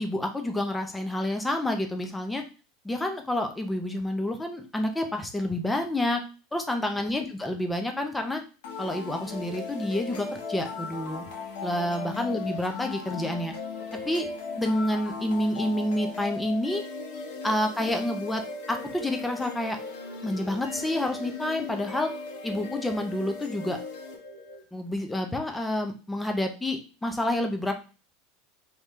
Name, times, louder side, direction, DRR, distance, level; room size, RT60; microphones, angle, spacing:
voice 1, 0.0-2.4 2.8-6.2 6.5-8.4 8.8-11.2 11.6-13.5 13.9-14.3 14.6-16.8 17.4-18.4 18.7-19.8 20.2-22.1 22.4-23.8 24.7-27.7, left 1 dB, 5° left, 5 dB, 0.5 m, -29 dB
sound 1, 8.6-24.6, left 4 dB, 65° left, 1.3 m, -37 dB
3.7 x 3.1 x 3.2 m, 0.33 s
supercardioid pair, 170°, 0 cm